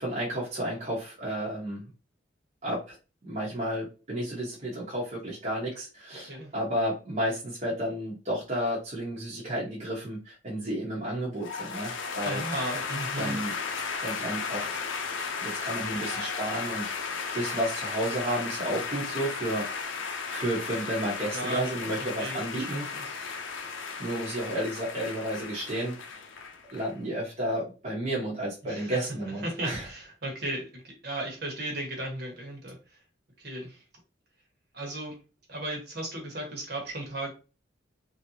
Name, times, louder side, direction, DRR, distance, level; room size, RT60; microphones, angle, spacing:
voice 1, 0.0-1.8 2.6-2.9 3.2-12.4 13.2-13.5 14.0-14.8 15.4-23.4 24.0-25.9 26.7-29.9, right 1 dB, 35° right, -5 dB, 0.9 m, -32 dB
sound 1, 11.4-26.9, left 5 dB, 85° left, 0.6 m, -35 dB
voice 2, 12.2-13.4 21.3-21.7 22.2-23.2 28.7-29.0 29.4-32.8 33.4-33.8 34.7-35.1 35.5-37.3, right 1 dB, 55° right, 1 dB, 1.2 m, -35 dB
3.2 x 2.7 x 2.7 m, 0.33 s
head